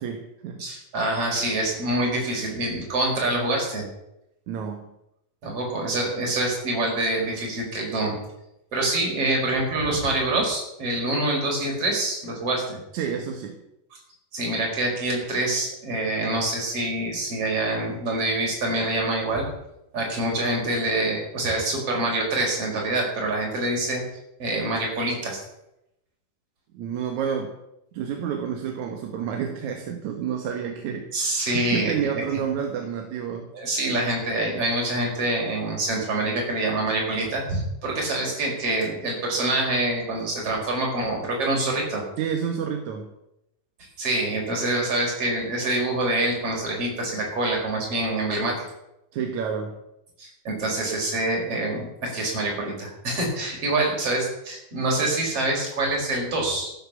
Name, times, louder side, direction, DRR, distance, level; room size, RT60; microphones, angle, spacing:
voice 1, 0.0-0.7 4.5-4.9 12.9-13.6 26.7-27.6 27.9-33.5 42.2-43.1 49.1-49.8, right 7 dB, 60° right, 4 dB, 2.4 m, -29 dB
voice 2, 0.6-3.8 5.4-8.2 8.7-12.8 14.3-19.5 19.9-24.0 24.4-25.4 31.1-31.9 33.5-42.0 44.0-48.5 50.2-56.7, right 2 dB, 40° right, -1 dB, 5.8 m, -26 dB
14.5 x 10.5 x 7.2 m, 0.86 s
omnidirectional pair, 4.2 m